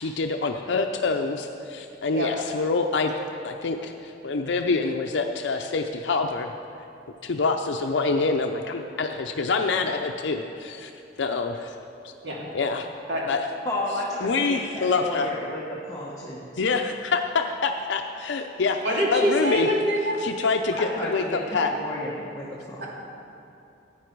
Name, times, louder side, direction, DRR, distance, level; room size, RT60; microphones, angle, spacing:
voice 1, 0.0-3.1 3.4-6.5 7.2-10.9 11.2-11.7 12.5-12.9 13.3-13.5 14.2-15.3 16.6-18.8 19.1-19.7 20.2-21.7, left 4 dB, 85° left, 4 dB, 0.5 m, -26 dB
voice 2, 13.6-16.4 20.8-22.8, left 1 dB, 15° left, -6 dB, 1.3 m, -32 dB
voice 3, 18.8-20.2 22.8-22.9, equal, 65° right, -3 dB, 2.6 m, -24 dB
14.5 x 9.2 x 4.6 m, 2.7 s
head